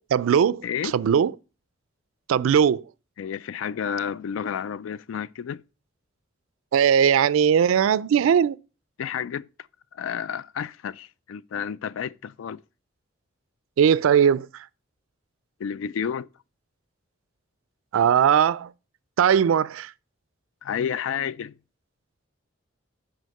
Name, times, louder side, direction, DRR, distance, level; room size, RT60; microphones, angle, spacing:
voice 1, 0.1-0.6 0.9-1.3 2.3-2.8 6.7-8.6 13.8-14.7 17.9-18.7 19.2-19.9, right 8 dB, 85° right, 0.3 m, -19 dB
voice 2, 0.6-0.9 3.2-5.6 9.0-9.5 9.9-12.6 15.6-16.3 20.6-21.6, left 8 dB, 80° left, 0.3 m, -30 dB
6.3 x 4.9 x 6.4 m
head